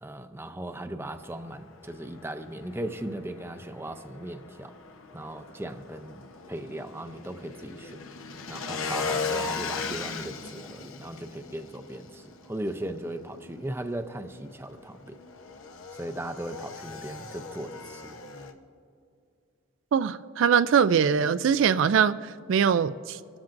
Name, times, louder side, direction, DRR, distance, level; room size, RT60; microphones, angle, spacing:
voice 1, 0.0-4.7 5.1-8.0 8.5-15.2 15.9-18.2, right 1 dB, 10° right, 0.5 m, -37 dB
Motorcycle / Engine, 1.1-18.5, left 4 dB, 80° left, 0.9 m, -39 dB
voice 2, 19.9-22.2 22.5-23.2, right 7 dB, 65° right, 0.3 m, -22 dB
25.0 x 13.0 x 2.6 m
head